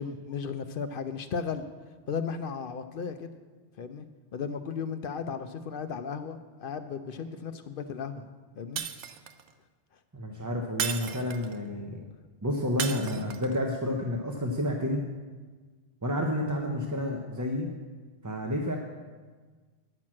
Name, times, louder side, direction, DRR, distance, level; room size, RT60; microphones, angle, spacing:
voice 1, 0.0-1.7 2.1-3.3 3.8-4.1 4.3-8.2 8.6-8.8, left 6 dB, 60° left, 9 dB, 0.7 m, -35 dB
Shatter, 8.8-9.5 10.8-11.6 12.8-13.6, right 8 dB, 85° right, 0.9 m, -34 dB
voice 2, 10.1-12.0 12.4-15.0 16.0-17.7 18.2-18.8, left 1 dB, 20° right, 0 dB, 0.6 m, -30 dB
9.9 x 6.1 x 7.4 m, 1.4 s
omnidirectional pair, 1.1 m